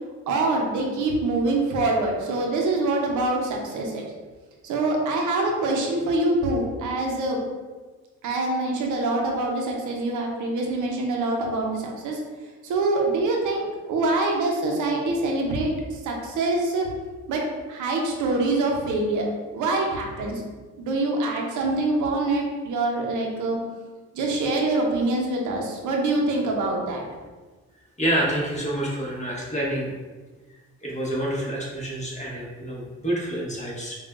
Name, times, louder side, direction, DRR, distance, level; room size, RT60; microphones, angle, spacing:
voice 1, 0.3-4.1 4.6-7.4 8.2-12.2 12.6-16.9 17.3-17.4 17.7-19.3 19.5-20.4 20.8-23.6 24.1-27.0, right 2 dB, 80° right, 0 dB, 0.8 m, -25 dB
voice 2, 28.0-29.9 30.8-34.0, right 1 dB, 25° left, -4 dB, 1.2 m, -27 dB
5.3 x 2.4 x 2.4 m, 1.3 s
cardioid pair, 90°, 30 cm